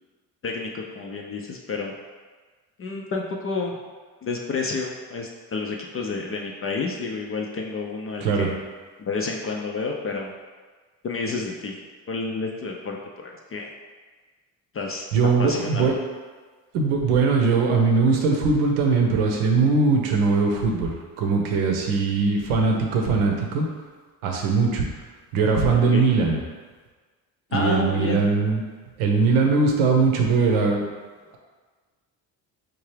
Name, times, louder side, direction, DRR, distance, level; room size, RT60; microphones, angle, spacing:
voice 1, 0.4-1.9 2.8-3.8 4.2-8.5 9.0-10.3 11.0-11.8 12.1-13.7 14.7-15.1 15.4-16.0 25.7-26.1 27.5-28.3, left 3 dB, 30° left, 0 dB, 0.4 m, -30 dB
voice 2, 15.1-15.9 16.7-23.7 24.2-24.9 25.3-26.4 27.5-28.6 29.0-30.8, right 4 dB, 75° right, 1 dB, 0.8 m, -20 dB
4.5 x 2.4 x 3.2 m, 1.4 s
hypercardioid pair, 55°, 48 cm